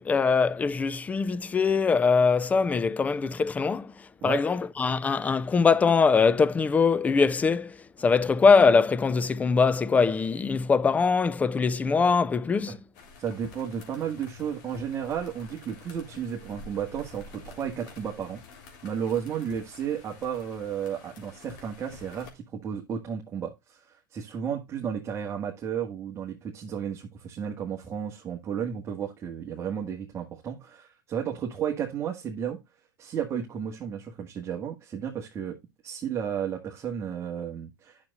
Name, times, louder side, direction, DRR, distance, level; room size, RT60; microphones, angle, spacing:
voice 1, 0.0-12.8, left 5 dB, 15° left, 0.4 m, -22 dB
sound 1, 12.9-22.3, left 4 dB, 55° left, 3.4 m, -49 dB
voice 2, 13.2-18.4 18.8-32.6 33.0-35.6 35.8-38.1, right 8 dB, 25° right, 1.6 m, -33 dB
10.5 x 6.6 x 2.4 m
hypercardioid pair, 125°, 11 cm